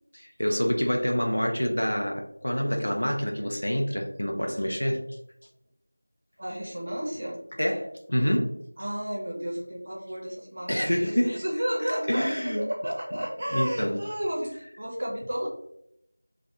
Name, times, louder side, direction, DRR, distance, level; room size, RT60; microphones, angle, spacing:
voice 1, 0.2-5.0 7.6-8.5 10.7-11.4 12.1-12.6 13.5-14.0, equal, 80° left, 2 dB, 0.5 m, -27 dB
voice 2, 6.4-7.4 8.8-15.5, equal, 40° right, -2 dB, 0.6 m, -32 dB
2.2 x 2.0 x 2.8 m, 0.80 s
figure-of-eight pair, 175°, 0 cm